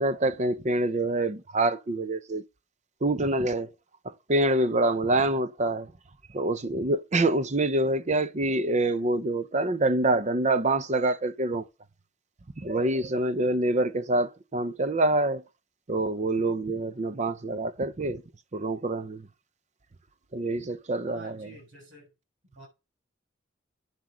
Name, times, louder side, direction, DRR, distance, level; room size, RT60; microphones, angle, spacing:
voice 1, 0.0-2.4 3.0-3.7 4.0-5.9 6.3-11.6 12.6-15.4 15.9-18.2 18.5-19.2 20.3-21.4, right 2 dB, 40° right, 0.7 m, -26 dB
voice 2, 21.0-22.1 22.5-22.7, right 1 dB, 90° right, 7.1 m, -48 dB
9.7 x 7.8 x 6.2 m
head